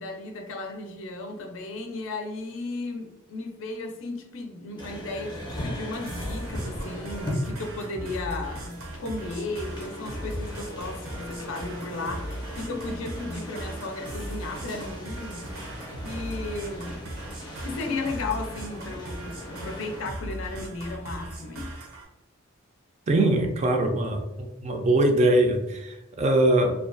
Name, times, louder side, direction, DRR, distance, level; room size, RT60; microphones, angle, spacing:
voice 1, 0.0-15.4 16.0-17.0 17.6-21.7, left 2 dB, 70° left, 0.4 m, -35 dB
sound 1, 4.8-20.0, equal, 20° left, 0.5 m, -38 dB
sound 2, 6.1-22.1, right 1 dB, 80° right, 0.6 m, -38 dB
voice 2, 23.1-26.7, right 1 dB, 35° right, 0.3 m, -22 dB
2.4 x 2.2 x 2.4 m
head